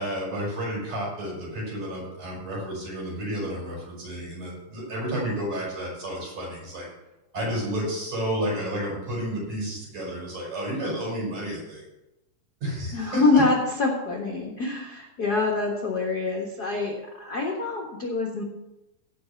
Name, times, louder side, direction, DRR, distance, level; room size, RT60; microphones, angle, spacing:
voice 1, 0.0-6.9 7.3-11.8 12.6-13.4, right 1 dB, 55° right, -3 dB, 6.4 m, -31 dB
voice 2, 12.9-18.4, left 3 dB, 45° left, 0 dB, 1.3 m, -25 dB
16.5 x 6.0 x 5.8 m, 0.97 s
omnidirectional pair, 3.8 m